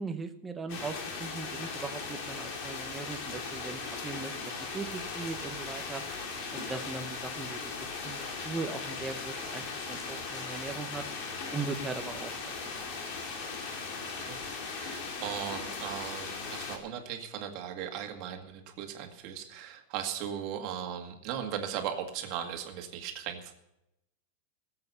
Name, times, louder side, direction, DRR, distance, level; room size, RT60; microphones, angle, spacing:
voice 1, 0.0-6.0 6.5-7.6 8.0-11.0 11.5-12.7, right 4 dB, 10° right, 7 dB, 1.0 m, -39 dB
sound 1, 0.7-16.8, left 4 dB, 40° left, 2.6 m, -38 dB
voice 2, 14.2-23.5, right 9 dB, 40° right, 4 dB, 2.0 m, -38 dB
18.5 x 7.9 x 5.6 m, 0.87 s
supercardioid pair, 170°, 0 cm